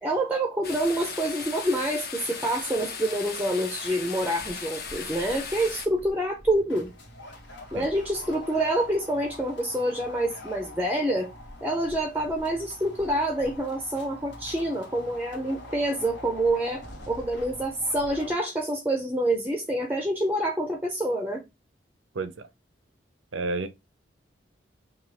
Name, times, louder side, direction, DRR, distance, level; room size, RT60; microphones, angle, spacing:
voice 1, 0.0-6.9 7.7-11.3 11.6-21.4, right 1 dB, 10° right, 0.5 m, -27 dB
sound 1, 0.6-5.9, left 5 dB, 55° left, 1.0 m, -37 dB
sound 2, 4.4-18.3, left 1 dB, 75° left, 1.6 m, -44 dB
voice 2, 22.1-22.5 23.3-23.7, right 3 dB, 85° right, 0.6 m, -30 dB
5.9 x 2.4 x 3.3 m
head